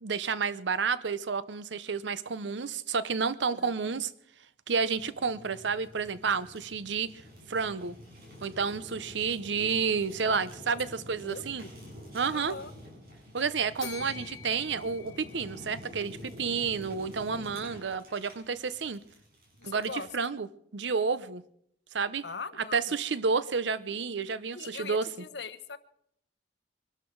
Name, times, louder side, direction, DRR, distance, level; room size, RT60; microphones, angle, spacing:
voice 1, 0.0-4.1 4.7-7.1 7.5-8.0 8.4-11.6 12.1-12.5 13.3-19.0 19.6-20.5 20.7-21.4 21.9-22.2 22.7-25.0, right 5 dB, 80° right, 0.7 m, -30 dB
voice 2, 3.5-4.0 10.7-10.8 11.2-11.7 12.3-12.7 17.4-17.6 19.6-20.1 22.2-22.9 24.5-25.8, left 4 dB, 70° left, 1.0 m, -42 dB
Fire, 5.0-20.1, left 1 dB, 55° right, 7.1 m, -48 dB
Bell, 13.8-16.0, left 9 dB, 20° left, 4.0 m, -46 dB
24.0 x 12.5 x 4.7 m
head